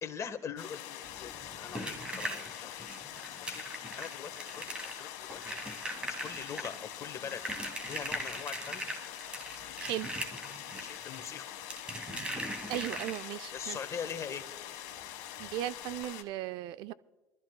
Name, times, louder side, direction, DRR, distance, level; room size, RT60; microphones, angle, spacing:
voice 1, 0.0-2.8 3.4-8.8 10.7-11.4 13.5-14.4, left 7 dB, 35° left, 9 dB, 1.4 m, -42 dB
sound 1, 0.6-16.2, left 12 dB, 75° left, 1.5 m, -44 dB
sound 2, 1.0-13.5 15.0-15.1 15.4-15.5 15.9-16.0, right 1 dB, 10° right, 2.1 m, -41 dB
voice 2, 12.7-13.8 15.4-16.9, right 14 dB, 65° right, 16 dB, 0.4 m, -37 dB
25.5 x 13.5 x 2.2 m, 1.2 s
supercardioid pair, 85°, 8 cm